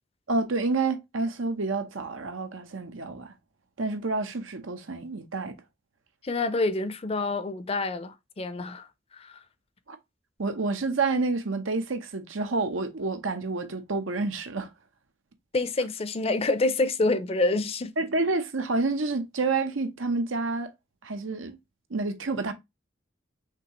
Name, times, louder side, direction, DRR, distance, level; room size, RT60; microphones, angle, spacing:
voice 1, 0.3-3.3 3.8-5.6 9.9-10.0 10.4-14.7 18.0-20.7 21.0-21.6 21.9-22.5, right 3 dB, 90° right, 0.9 m, -29 dB
voice 2, 6.2-8.9 9.1-9.3 15.5-17.9, left 2 dB, 30° left, 0.5 m, -27 dB
5.9 x 2.8 x 3.0 m
head